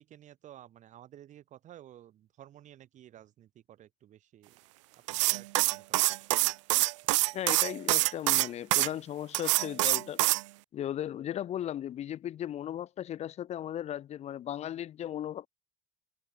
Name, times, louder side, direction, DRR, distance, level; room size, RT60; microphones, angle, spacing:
voice 1, 0.0-4.6 4.9-6.1, right 12 dB, 50° right, 3.8 m, -53 dB
sound 1, 5.1-8.9 9.3-10.4, right 20 dB, 80° right, 0.4 m, -26 dB
voice 2, 7.3-10.2 10.7-15.5, left 11 dB, 45° left, 0.9 m, -36 dB
hypercardioid pair, 70°, 16 cm